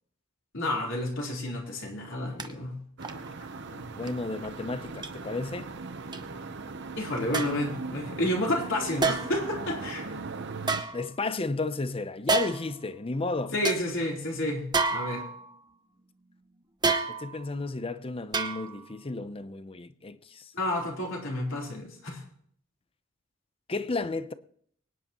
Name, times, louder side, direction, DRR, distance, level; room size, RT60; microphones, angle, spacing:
voice 1, 0.5-2.8 7.0-10.2 13.5-15.3 20.5-22.2, left 1 dB, 65° left, 4.0 m, -30 dB
sound 1, 2.4-2.5 3.0-3.3 4.0-4.1 5.0-5.1 6.1-6.2 7.3-7.7 9.0-9.5 10.6-11.5 12.3-12.8 13.2-13.3 13.6-13.8 14.7-15.6 16.8-17.5 18.3-18.9 19.2-19.3, right 4 dB, 20° right, 0.9 m, -29 dB
sound 2, 3.0-10.8, right 3 dB, 60° right, 0.9 m, -39 dB
voice 2, 3.7-5.7 10.9-13.5 17.1-20.5 23.7-24.3, left 3 dB, 25° left, 0.6 m, -33 dB
24.5 x 9.7 x 3.1 m
head